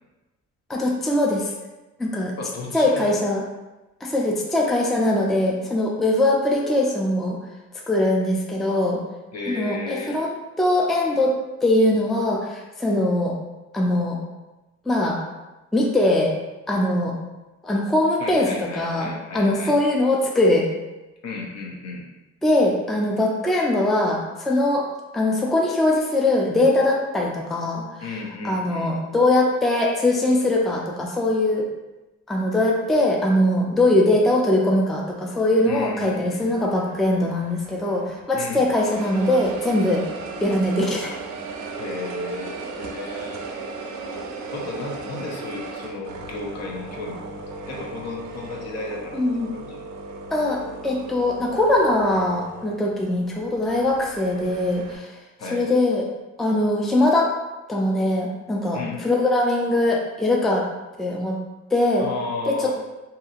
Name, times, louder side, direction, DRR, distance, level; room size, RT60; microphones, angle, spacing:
voice 1, 0.7-1.5 2.0-2.3 2.7-3.4 4.0-7.4 7.9-9.0 9.5-11.4 11.6-13.4 13.7-14.2 14.9-15.2 15.7-16.3 16.7-17.1 17.6-20.7 22.4-24.8 25.1-28.0 28.4-31.6 32.3-40.1 40.4-41.2 49.1-49.5 50.3-55.1 55.5-56.1 56.4-57.3 57.7-60.7 61.0-61.4 61.7-62.1 62.4-62.7, left 1 dB, ahead, -1 dB, 0.3 m, -21 dB
voice 2, 2.4-3.1 9.3-10.2 18.2-19.7 21.2-22.1 28.0-28.9 35.7-36.5 38.3-38.7 41.8-43.4 44.4-49.2 49.5-49.8 55.4-55.7 58.7-59.0 62.0-62.7, left 3 dB, 60° left, -1 dB, 0.7 m, -33 dB
sound 1, 35.6-38.4 38.8-55.0, right 3 dB, 70° right, 0.5 m, -37 dB
2.7 x 2.7 x 2.4 m, 1.1 s
cardioid pair, 90°, 30 cm